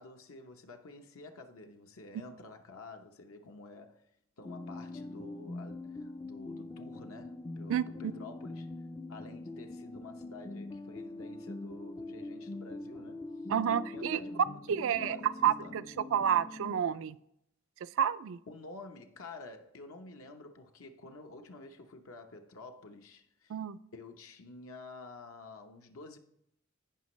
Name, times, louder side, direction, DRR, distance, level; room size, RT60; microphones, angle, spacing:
voice 1, 0.0-4.0 4.4-8.7 9.1-13.3 13.9-15.8 18.5-23.6 23.9-26.2, left 3 dB, 75° left, 0.8 m, -50 dB
sound 1, 4.4-16.8, left 2 dB, 20° left, 0.3 m, -43 dB
voice 2, 13.5-14.2 14.7-17.2 18.0-18.4 23.5-23.8, right 9 dB, 65° right, 0.4 m, -30 dB
15.5 x 5.2 x 3.1 m
head